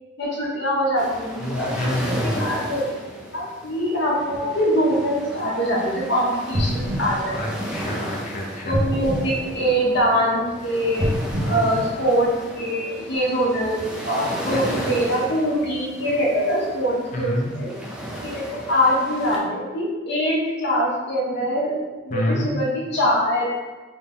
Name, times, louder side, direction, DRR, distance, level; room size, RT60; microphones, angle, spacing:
voice 1, 0.2-1.7 2.0-2.8 3.3-7.3 8.7-11.0 11.5-13.8 14.0-17.7 18.2-18.4 18.7-21.8 22.0-23.5, equal, 60° left, -5 dB, 1.0 m, -23 dB
sound 1, 1.0-19.4, equal, 5° right, 0.4 m, -34 dB
voice 2, 1.4-2.4 7.3-8.8 11.0-11.8 14.5-14.9 17.1-17.5 22.1-22.5, left 1 dB, 40° left, 0 dB, 0.6 m, -28 dB
sound 2, 6.5-8.2 8.7-10.2 10.9-12.6 13.1-13.2, equal, 30° right, 0.8 m, -27 dB
4.0 x 2.2 x 3.6 m, 1.2 s
head